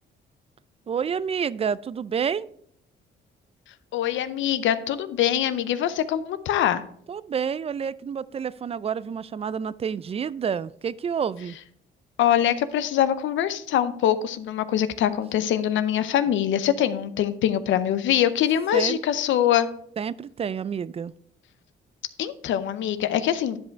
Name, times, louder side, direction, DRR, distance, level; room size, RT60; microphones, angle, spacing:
voice 1, 0.9-2.5 7.1-11.6 18.7-19.0 20.0-21.1, right 7 dB, 30° right, 19 dB, 0.3 m, -29 dB
voice 2, 3.9-6.8 12.2-19.7 22.2-23.6, left 10 dB, 75° left, 13 dB, 0.6 m, -23 dB
10.0 x 5.3 x 4.6 m, 0.67 s
cardioid pair, 90°, 20 cm